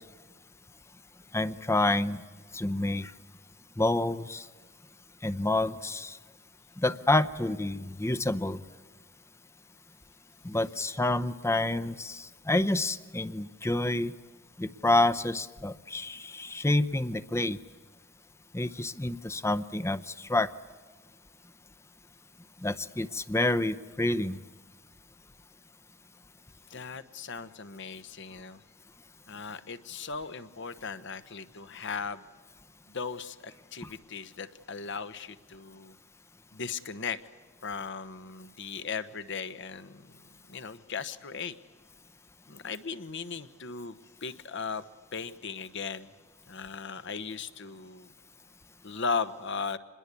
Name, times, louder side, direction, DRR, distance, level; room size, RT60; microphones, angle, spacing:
voice 1, 1.3-2.2 2.5-3.1 3.8-4.5 5.2-6.2 6.8-8.6 10.4-14.1 14.6-17.6 18.5-20.5 22.6-24.4 33.8-33.9, left 2 dB, 15° left, 13 dB, 0.7 m, -28 dB
voice 2, 26.7-28.6 29.3-32.2 32.9-35.9 36.5-37.2 37.6-40.1 40.5-41.5 42.5-44.8 45.1-46.1 46.5-48.1 48.8-49.8, left 5 dB, 65° left, 11 dB, 1.2 m, -37 dB
26.0 x 21.0 x 8.4 m, 1.4 s
head